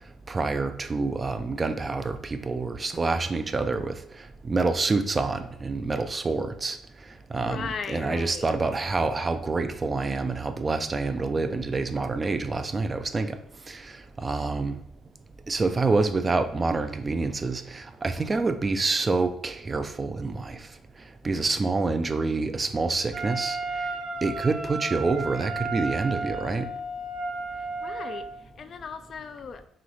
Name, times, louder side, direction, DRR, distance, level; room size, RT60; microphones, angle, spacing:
voice 1, 0.3-4.0 4.4-6.8 7.3-13.4 13.7-13.9 14.2-14.8 15.5-20.6 21.2-23.6 24.2-26.7, right 3 dB, 30° right, 9 dB, 0.4 m, -27 dB
voice 2, 7.4-8.5 27.6-28.3 28.6-29.6, left 6 dB, 50° left, 9 dB, 0.4 m, -37 dB
Wind instrument woodwind instrument, 23.1-28.3, right 2 dB, 80° right, 1.1 m, -33 dB
3.1 x 3.0 x 3.9 m, 0.71 s
cardioid pair, 80°, 0 cm